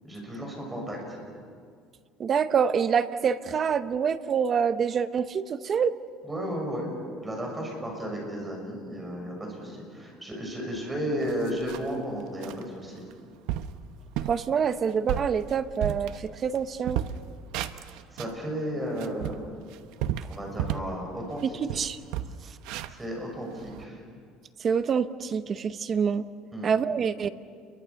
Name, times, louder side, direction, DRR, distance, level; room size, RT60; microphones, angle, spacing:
voice 1, 0.0-1.0 6.2-6.9 7.2-13.0 18.1-19.4 20.3-21.6 22.9-24.0 26.5-26.7, equal, 10° right, 0 dB, 6.6 m, -33 dB
voice 2, 2.2-5.9 14.3-17.0 21.4-22.0 24.6-26.2 26.6-27.3, right 6 dB, 30° right, 12 dB, 0.8 m, -26 dB
sound 1, 10.7-10.8 11.2-12.0 12.4-12.6 13.1-13.2 13.5-13.8 14.2-14.4 14.9-16.6 16.8-18.4 18.8-21.0 21.3-21.4 21.7-23.8, right 11 dB, 70° right, 0.9 m, -33 dB
29.5 x 23.0 x 7.0 m, 2.1 s
cardioid pair, 155°, 0 cm